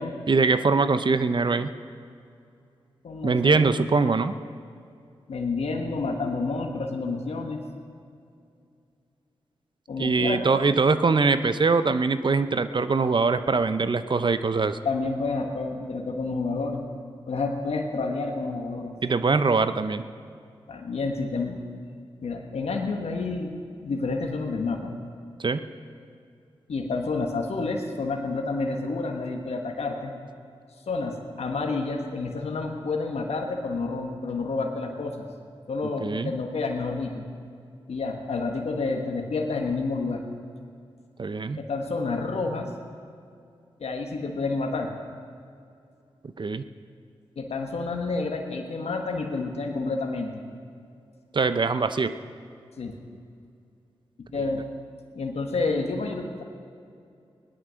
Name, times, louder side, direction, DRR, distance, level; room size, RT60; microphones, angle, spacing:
voice 1, 0.3-1.7 3.2-4.3 10.0-14.8 19.0-20.0 25.4-25.7 36.0-36.3 41.2-41.6 46.4-46.6 51.3-52.2 54.3-54.4, right 4 dB, 50° right, 11 dB, 0.7 m, -23 dB
voice 2, 3.0-3.6 5.3-7.6 9.9-10.4 14.8-16.8 17.3-18.9 20.7-21.6 22.2-23.5 23.8-24.9 26.7-30.1 30.9-35.2 35.7-37.2 37.9-40.2 41.6-42.7 43.8-44.9 47.4-50.3 52.8-52.9 54.2-54.7 55.1-56.4, left 3 dB, 75° left, 2 dB, 1.4 m, -29 dB
17.0 x 11.5 x 6.4 m, 2.4 s
cardioid pair, 40°, 11 cm